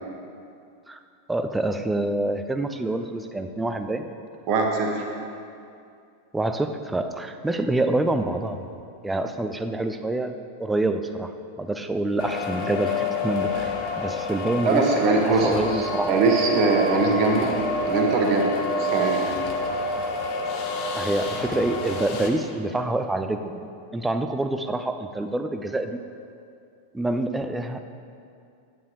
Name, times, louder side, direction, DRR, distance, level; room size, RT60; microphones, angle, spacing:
voice 1, 1.3-4.1 6.3-8.7 9.0-10.3 10.6-14.9 15.2-16.1 21.0-23.5 23.9-26.0 26.9-27.8, right 2 dB, 10° right, 8 dB, 0.4 m, -26 dB
voice 2, 4.5-5.0 14.6-17.5 17.9-18.5 18.8-19.2, right 3 dB, 40° right, 1 dB, 1.1 m, -22 dB
sound 1, 12.2-22.3, left 2 dB, 40° left, 0.8 m, -28 dB
8.5 x 8.1 x 3.1 m, 2.5 s
figure-of-eight pair, 90°, 0 cm